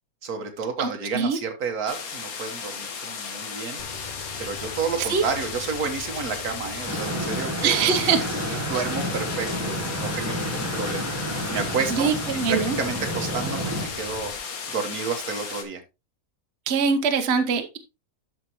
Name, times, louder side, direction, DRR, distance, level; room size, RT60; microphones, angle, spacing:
voice 1, 0.2-3.8 4.4-7.9 8.7-12.1 12.5-15.8, right 5 dB, 85° right, 6 dB, 1.8 m, -31 dB
voice 2, 0.8-1.4 5.0-5.2 7.6-8.2 8.5-8.7 11.9-12.8 16.7-17.8, right 6 dB, 50° right, 7 dB, 1.1 m, -23 dB
sound 1, 1.9-15.6, left 6 dB, 75° left, 1.7 m, -35 dB
sound 2, 3.8-14.4, left 3 dB, 45° left, 0.8 m, -41 dB
sound 3, 6.9-13.9, equal, 10° right, 1.0 m, -30 dB
12.0 x 5.2 x 3.0 m, 0.25 s
omnidirectional pair, 1.5 m